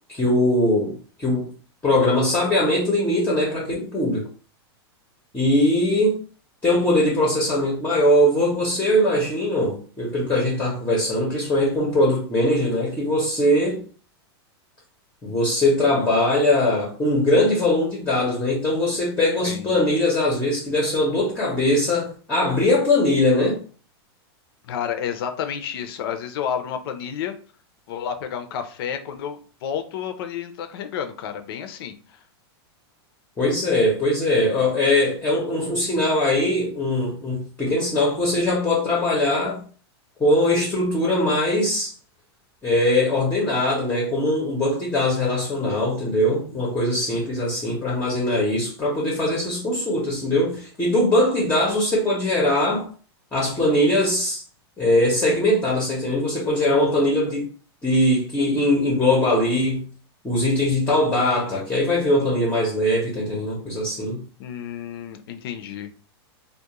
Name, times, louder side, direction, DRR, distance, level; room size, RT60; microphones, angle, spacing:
voice 1, 0.1-1.5 1.8-4.3 5.3-6.2 6.6-13.8 15.2-23.6 33.4-39.6 40.2-41.9 42.6-52.9 53.3-54.4 54.8-57.5 57.8-59.9 60.2-64.2, left 1 dB, 10° left, 0.7 m, -21 dB
voice 2, 19.4-19.8 24.7-27.3 27.9-32.2 64.4-65.9, left 8 dB, 60° left, 0.5 m, -30 dB
2.3 x 2.1 x 2.9 m
supercardioid pair, 145°, 14 cm